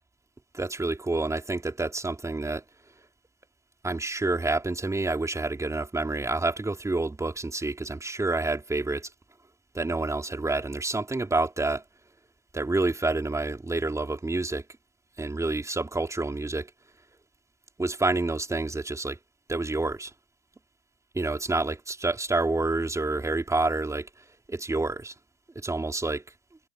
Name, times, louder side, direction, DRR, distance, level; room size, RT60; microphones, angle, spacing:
voice 1, 0.5-2.6 3.8-9.1 9.7-11.8 12.5-14.6 15.2-16.7 17.8-19.2 19.5-20.1 21.2-24.1 24.5-25.1 25.6-26.2, right 2 dB, 10° right, 4.1 m, -28 dB
hypercardioid pair, 100°, 33 cm